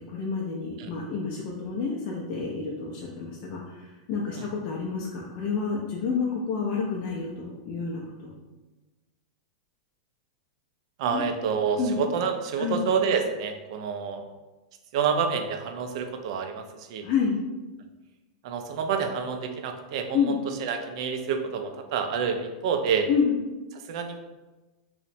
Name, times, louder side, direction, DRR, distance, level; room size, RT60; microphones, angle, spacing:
voice 1, 0.1-8.4 11.1-11.2 11.8-12.0 12.6-12.8 17.0-17.4 20.1-20.4 23.1-23.3, left 5 dB, 35° left, -3 dB, 0.4 m, -29 dB
voice 2, 11.0-14.2 14.9-17.0 18.4-23.1 23.9-24.2, right 6 dB, 55° right, 6 dB, 0.3 m, -28 dB
2.8 x 2.0 x 2.5 m, 1.1 s
supercardioid pair, 155°, 4 cm